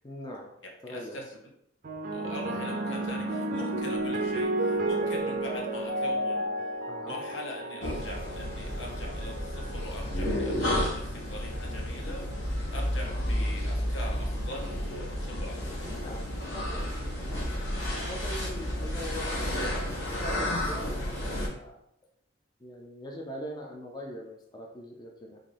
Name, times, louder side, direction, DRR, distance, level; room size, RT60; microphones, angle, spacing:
voice 1, 0.0-0.5 0.8-1.2 6.9-7.2 15.8-16.3 16.5-17.5 18.1-21.8 22.6-25.4, equal, 20° left, 0 dB, 0.4 m, -42 dB
voice 2, 0.6-1.4 2.1-6.5 7.0-12.3 12.7-15.9, left 1 dB, 80° left, 0 dB, 0.9 m, -42 dB
sound 1, 1.8-10.4 11.3-11.7, right 1 dB, 45° right, 0.4 m, -32 dB
sound 2, 7.8-21.5, left 1 dB, 65° left, 1.1 m, -32 dB
3.8 x 2.6 x 3.3 m, 0.73 s
head